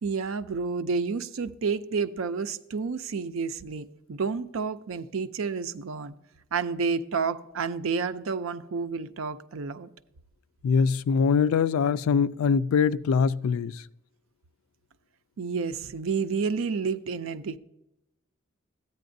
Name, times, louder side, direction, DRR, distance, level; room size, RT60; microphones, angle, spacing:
voice 1, 0.0-6.1 6.5-9.9 15.4-17.6, right 5 dB, 80° right, 0.5 m, -30 dB
voice 2, 10.6-13.8, left 6 dB, 90° left, 0.3 m, -23 dB
13.5 x 9.3 x 2.6 m
head